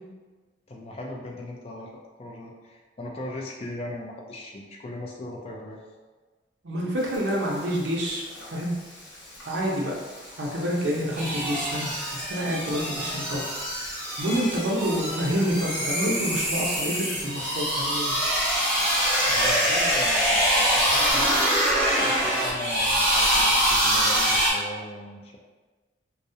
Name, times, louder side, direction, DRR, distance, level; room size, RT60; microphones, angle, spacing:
voice 1, 0.7-1.9 2.2-5.8 19.2-21.4 22.0-25.4, left 1 dB, 35° left, -1 dB, 0.3 m, -38 dB
voice 2, 6.6-8.2 8.5-8.7 9.4-9.9 10.4-13.4 14.2-18.2, equal, 80° right, -3 dB, 0.6 m, -28 dB
Frying (food), 7.0-21.1, left 1 dB, 90° left, 0.8 m, -42 dB
sound 1, 11.2-24.5, equal, 10° right, 0.8 m, -24 dB
2.3 x 2.0 x 2.6 m, 1.3 s
head